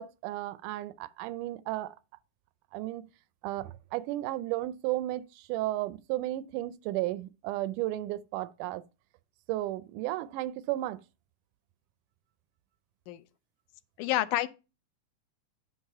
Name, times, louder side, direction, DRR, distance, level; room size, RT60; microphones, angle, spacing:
voice 1, 0.0-2.0 2.7-3.1 3.4-8.8 9.5-11.0, right 15 dB, 90° right, 2.1 m, -34 dB
voice 2, 14.0-14.5, left 15 dB, 90° left, 2.1 m, -28 dB
9.6 x 3.9 x 5.4 m
omnidirectional pair, 3.5 m